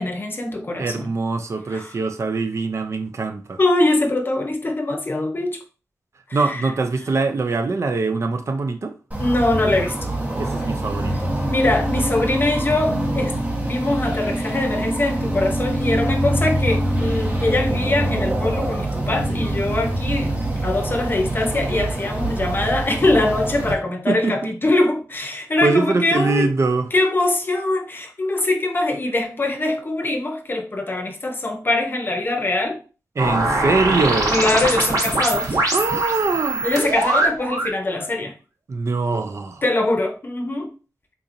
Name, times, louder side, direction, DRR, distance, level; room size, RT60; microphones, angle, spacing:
voice 1, 0.0-1.1 1.7-1.9 3.6-5.6 6.4-6.6 9.2-10.1 11.5-13.4 13.6-20.3 20.6-26.5 26.9-32.8 34.3-35.6 36.6-38.3 39.6-40.7, left 2 dB, 35° left, 0.7 m, -22 dB
voice 2, 0.8-3.6 6.3-8.9 10.3-11.3 24.1-24.3 25.6-26.9 33.2-34.3 35.7-36.7 38.7-39.6, right 3 dB, 50° right, 0.4 m, -23 dB
sound 1, 9.1-23.7, right 1 dB, 25° right, 0.9 m, -24 dB
sound 2, 33.2-37.8, right 2 dB, 70° right, 1.0 m, -22 dB
3.8 x 2.8 x 2.6 m
wide cardioid pair, 120°, 6 cm